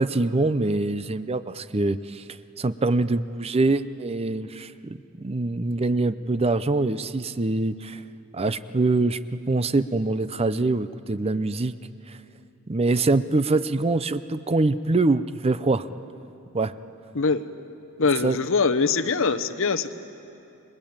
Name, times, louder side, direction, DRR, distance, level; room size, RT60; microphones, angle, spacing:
voice 1, 0.0-2.2 2.6-8.0 8.3-11.8 12.1-12.2 12.7-15.9 16.5-16.7 18.2-18.4, right 2 dB, 25° right, 13 dB, 0.6 m, -24 dB
voice 2, 18.0-19.9, left 4 dB, 60° left, 11 dB, 1.1 m, -23 dB
30.0 x 21.5 x 8.8 m, 2.8 s
head